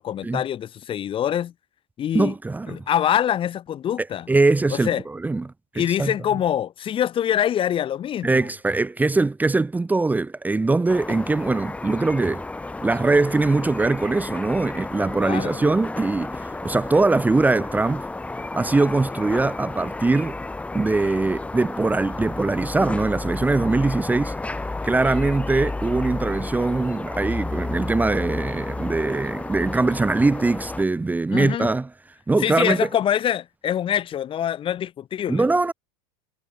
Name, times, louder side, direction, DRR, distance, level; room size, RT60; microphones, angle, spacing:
voice 1, 0.0-1.5 2.0-2.3 2.7-4.3 4.7-5.0 5.7-8.5 15.2-15.6 31.3-31.7 32.4-35.5, left 10 dB, 30° left, 2.3 m, -24 dB
voice 2, 2.1-2.8 4.3-5.5 5.8-6.1 8.2-12.4 12.8-18.0 18.5-20.4 20.7-24.4 24.8-31.9 32.3-32.9 35.3-35.7, right 3 dB, 10° right, 1.9 m, -22 dB
sound 1, 10.9-30.8, left 2 dB, 5° left, 1.7 m, -32 dB
hypercardioid pair, 120°, 18 cm